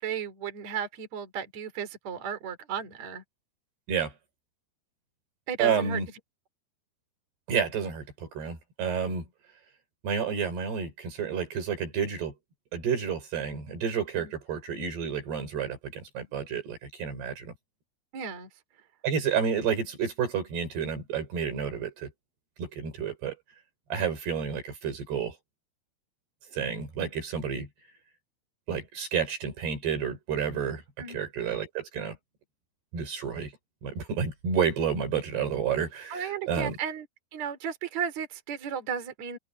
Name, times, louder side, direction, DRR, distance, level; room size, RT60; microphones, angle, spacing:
voice 1, 0.0-3.2 5.5-6.0 14.2-14.3 18.1-18.5 31.0-31.3 36.1-37.1 37.3-39.4, right 7 dB, 45° right, 4.4 m, -34 dB
voice 2, 5.6-6.1 7.5-8.0 8.3-9.2 10.0-12.3 12.7-17.4 19.0-22.1 22.6-23.3 23.9-25.3 26.5-27.7 28.7-30.8 31.1-32.1 32.9-33.5 33.8-36.7, right 7 dB, 70° right, 7.0 m, -30 dB
open air
omnidirectional pair, 4.8 m